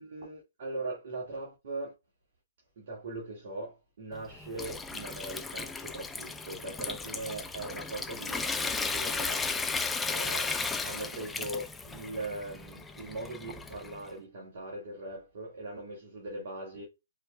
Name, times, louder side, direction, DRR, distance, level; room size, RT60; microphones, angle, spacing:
voice 1, 0.0-1.9 2.8-9.7 10.0-10.5 10.8-16.8, right 2 dB, 55° right, 1.7 m, -40 dB
Water tap faucet / Sink (filling or washing) / Trickle dribble, 4.1-14.1, left 4 dB, 10° left, 0.5 m, -35 dB
4.8 x 4.3 x 2.2 m
figure-of-eight pair, 130°, 0 cm